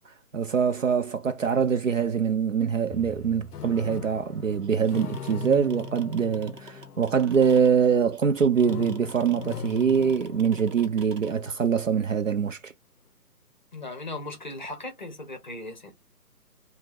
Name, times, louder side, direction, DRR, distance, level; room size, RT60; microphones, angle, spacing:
voice 1, 0.3-12.7, right 7 dB, 55° right, 0.5 m, -24 dB
sound 1, 2.9-8.1 8.5-11.6, left 6 dB, 75° left, 0.5 m, -41 dB
sound 2, 4.6-11.3, right 3 dB, 80° right, 0.9 m, -46 dB
voice 2, 13.7-15.9, left 2 dB, 30° left, 0.7 m, -37 dB
2.6 x 2.2 x 3.3 m
figure-of-eight pair, 145°, 47 cm